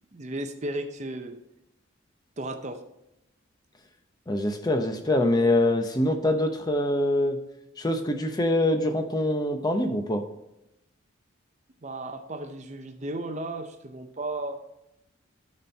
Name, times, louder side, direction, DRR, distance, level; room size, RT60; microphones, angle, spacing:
voice 1, 0.1-1.4 2.4-2.8 11.8-14.6, right 2 dB, 35° right, 7 dB, 0.7 m, -34 dB
voice 2, 4.3-7.4 7.8-10.2, left 1 dB, 20° left, 6 dB, 0.7 m, -24 dB
12.5 x 4.3 x 4.4 m, 0.87 s
head